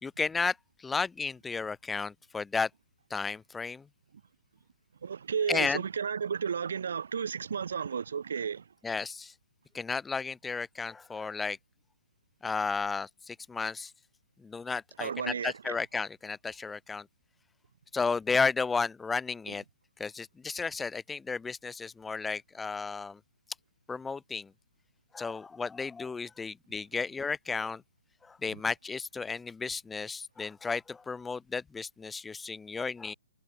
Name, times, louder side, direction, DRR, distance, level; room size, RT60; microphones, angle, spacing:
voice 1, 0.0-2.7 3.1-3.9 5.5-5.8 8.8-9.3 9.7-11.6 12.4-13.9 14.4-17.1 17.9-19.6 20.0-23.2 23.9-24.5 25.1-27.8 28.2-33.1, left 4 dB, 10° left, 1.7 m, -33 dB
voice 2, 5.0-8.7 15.0-15.8 28.5-28.6, right 7 dB, 65° right, 7.7 m, -33 dB
figure-of-eight pair, 130°, 0 cm